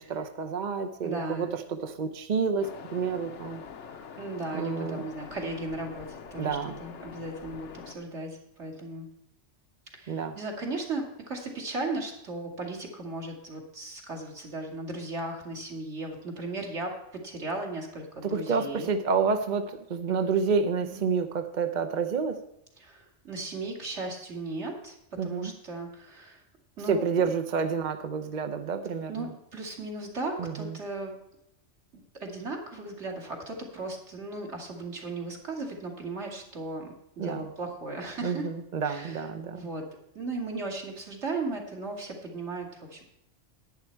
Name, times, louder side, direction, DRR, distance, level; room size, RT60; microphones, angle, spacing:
voice 1, 0.0-3.6 4.5-5.0 6.4-6.7 10.1-10.4 18.2-22.4 25.2-25.5 26.9-29.3 30.4-30.8 37.2-37.4 38.2-39.7, right 5 dB, 45° right, 8 dB, 0.7 m, -29 dB
voice 2, 1.0-1.5 4.2-9.1 9.9-18.9 20.1-20.3 20.8-21.0 22.8-24.9 25.2-26.4 26.8-27.3 29.1-31.1 31.9-38.5 38.8-39.3 39.5-39.8 40.1-43.0, right 2 dB, 65° right, 0 dB, 2.4 m, -36 dB
Waves surf, 2.6-8.0, left 6 dB, 70° left, 1.1 m, -45 dB
10.5 x 9.8 x 4.5 m, 0.82 s
omnidirectional pair, 1.3 m